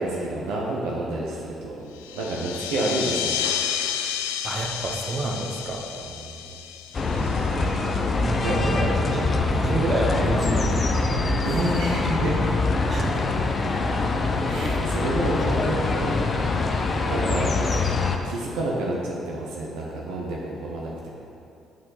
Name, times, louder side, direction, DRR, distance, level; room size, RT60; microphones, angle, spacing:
voice 1, 0.0-1.8 2.1-3.4 6.2-6.4 8.4-8.6 9.8-9.9 11.4-12.4 14.4-16.1 17.1-17.5 18.2-21.1, right 2 dB, 70° right, -3 dB, 0.9 m, -29 dB
sound 1, 2.0-8.1, left 9 dB, 80° left, 0.3 m, -31 dB
voice 2, 4.4-5.9 8.2-11.2 12.9-13.2 14.5-14.8, right 2 dB, 40° right, 0 dB, 1.1 m, -28 dB
sound 2, 6.9-18.2, left 3 dB, 40° left, 0.7 m, -24 dB
7.5 x 4.3 x 5.9 m, 2.6 s
figure-of-eight pair, 45°, 0 cm